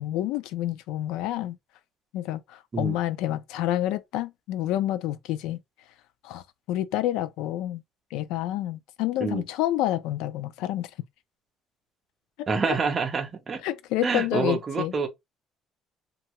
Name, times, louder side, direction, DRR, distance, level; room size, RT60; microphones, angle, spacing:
voice 1, 0.0-1.6 2.1-5.6 6.2-7.8 8.1-10.9 12.7-12.8 13.6-14.9, left 13 dB, 90° left, 0.3 m, -28 dB
voice 2, 12.5-13.6 14.0-15.1, right 5 dB, 20° right, 0.5 m, -27 dB
2.7 x 2.3 x 2.9 m
cardioid pair, 175°, 0 cm